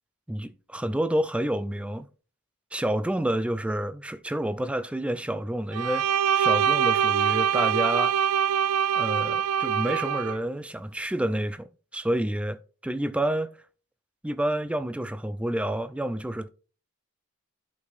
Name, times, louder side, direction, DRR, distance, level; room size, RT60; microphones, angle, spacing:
voice 1, 0.3-2.1 2.7-6.1 6.3-8.1 8.9-13.5 14.2-16.5, right 1 dB, 5° right, 0.3 m, -29 dB
Bowed string instrument, 5.7-10.4, right 8 dB, 90° right, 0.3 m, -24 dB
11.5 x 5.3 x 2.5 m
head